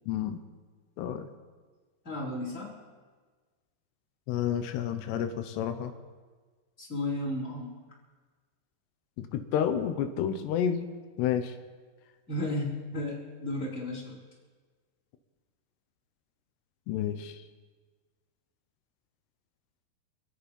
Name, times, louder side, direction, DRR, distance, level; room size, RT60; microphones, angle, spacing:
voice 1, 0.1-0.4 1.0-1.3 4.3-5.9 9.2-10.9 11.2-11.5 16.9-17.4, left 9 dB, 90° left, 8 dB, 3.0 m, -30 dB
voice 2, 2.0-2.7 6.8-7.7 12.3-14.2, left 1 dB, 15° left, -6 dB, 4.2 m, -33 dB
26.5 x 9.1 x 5.3 m, 1.4 s
omnidirectional pair, 4.7 m